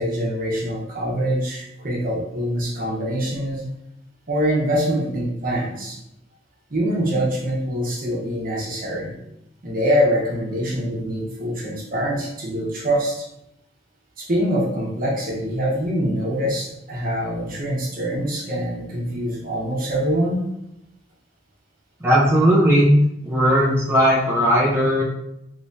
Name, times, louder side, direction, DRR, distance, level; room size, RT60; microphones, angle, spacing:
voice 1, 0.0-3.7 4.3-6.0 6.7-9.1 9.6-13.3 14.2-20.4, equal, 50° right, -4 dB, 1.0 m, -24 dB
voice 2, 22.0-22.9 23.2-25.0, equal, 15° right, -7 dB, 0.6 m, -17 dB
3.4 x 3.1 x 2.7 m, 0.84 s
head